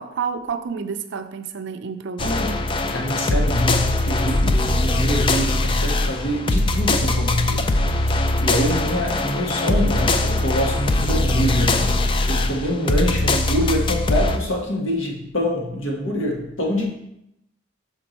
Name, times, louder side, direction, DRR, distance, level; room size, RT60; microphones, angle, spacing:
voice 1, 0.0-2.4, right 6 dB, 60° right, 0.4 m, -29 dB
voice 2, 2.2-16.9, left 1 dB, 75° left, 1.4 m, -25 dB
sound 1, 2.2-14.4, left 2 dB, 25° left, 0.3 m, -21 dB
5.7 x 4.4 x 4.1 m
head